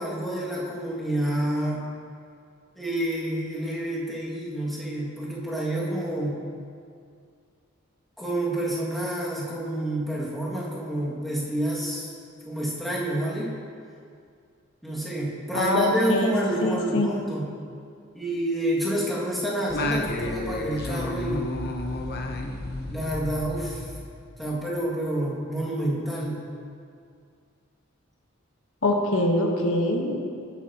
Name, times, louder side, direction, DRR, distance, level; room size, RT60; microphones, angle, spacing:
voice 1, 0.0-1.8 2.8-6.4 8.2-12.1 12.4-13.5 14.8-17.5 18.1-21.5 22.9-23.9 24.4-26.4, right 1 dB, ahead, -8 dB, 2.0 m, -28 dB
voice 2, 15.5-16.3 16.6-17.1 28.8-30.2, left 1 dB, 85° left, 1 dB, 1.2 m, -23 dB
Singing, 19.7-24.5, left 2 dB, 50° left, 0.8 m, -31 dB
17.5 x 9.0 x 2.9 m, 2.3 s
head